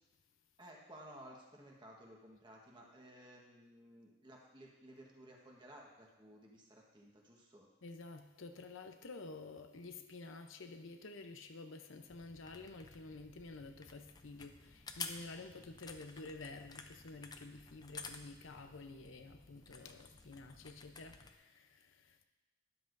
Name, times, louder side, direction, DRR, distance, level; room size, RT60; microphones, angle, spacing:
voice 1, 0.6-7.7, right 1 dB, 25° right, -1 dB, 1.3 m, -56 dB
voice 2, 7.8-22.2, left 3 dB, 85° left, 6 dB, 0.8 m, -50 dB
sound 1, 12.1-21.3, left 5 dB, 20° left, 0.5 m, -52 dB
12.5 x 10.0 x 2.6 m, 1.1 s
head